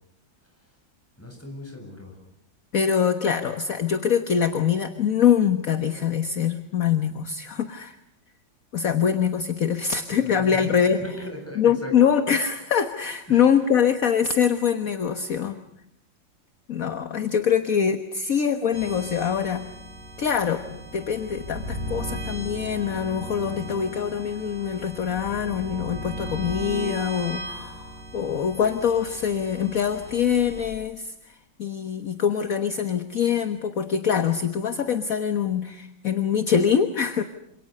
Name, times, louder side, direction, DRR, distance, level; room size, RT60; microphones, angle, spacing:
voice 1, 1.2-2.1 10.2-11.9 13.3-13.4, left 1 dB, 5° left, 1 dB, 7.9 m, -38 dB
voice 2, 2.7-7.9 8.7-11.0 11.5-15.6 16.7-19.7 20.2-37.2, left 7 dB, 50° left, 9 dB, 1.6 m, -24 dB
sound 1, 18.7-30.7, right 1 dB, 65° right, 6.6 m, -37 dB
27.5 x 27.5 x 6.7 m, 0.76 s
omnidirectional pair, 2.0 m